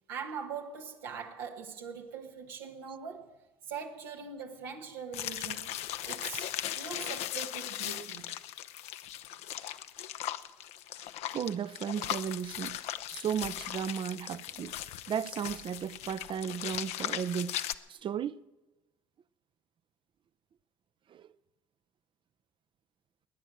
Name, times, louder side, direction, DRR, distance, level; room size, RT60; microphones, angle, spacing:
voice 1, 0.1-3.4 3.7-5.7 6.0-8.4, right 6 dB, 85° right, 1.5 m, -42 dB
sound 1, 5.1-17.7, left 12 dB, 70° left, 0.7 m, -38 dB
voice 2, 11.3-12.8 13.1-14.8 15.1-17.6 17.9-18.4 21.1-21.3, right 8 dB, 45° right, 0.6 m, -35 dB
21.0 x 9.0 x 7.5 m
hypercardioid pair, 65°, 11 cm